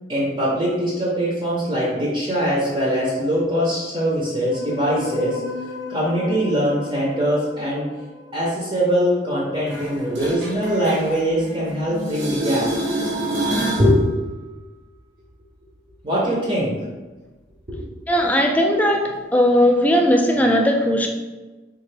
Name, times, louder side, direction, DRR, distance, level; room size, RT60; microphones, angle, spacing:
voice 1, 0.1-5.4 5.9-7.9 8.3-12.7 13.8-14.0 16.0-16.7 17.7-17.9, equal, 25° right, -5 dB, 0.7 m, -22 dB
sound 1, 4.5-9.0 11.4-13.8, left 3 dB, 80° left, 0.4 m, -35 dB
sound 2, 9.7-11.7 12.0-13.9 19.6-19.7, right 1 dB, 70° right, 0.8 m, -27 dB
voice 2, 18.1-21.1, equal, 10° left, 2 dB, 0.3 m, -18 dB
3.6 x 2.4 x 3.3 m, 1.2 s
head